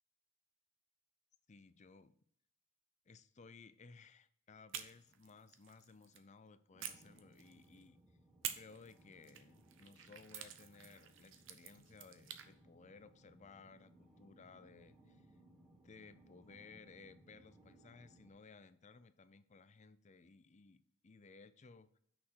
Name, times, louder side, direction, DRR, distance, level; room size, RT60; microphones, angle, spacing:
voice 1, 1.5-2.1 3.1-8.0 8.5-15.4 15.8-22.0, left 4 dB, 35° left, 13 dB, 0.5 m, -59 dB
sound 1, 4.7-6.2 6.8-7.8 8.4-12.5, right 9 dB, 70° right, 0.8 m, -49 dB
sound 2, 6.7-18.3, right 1 dB, ahead, 2.0 m, -65 dB
6.4 x 5.9 x 4.7 m, 0.65 s
head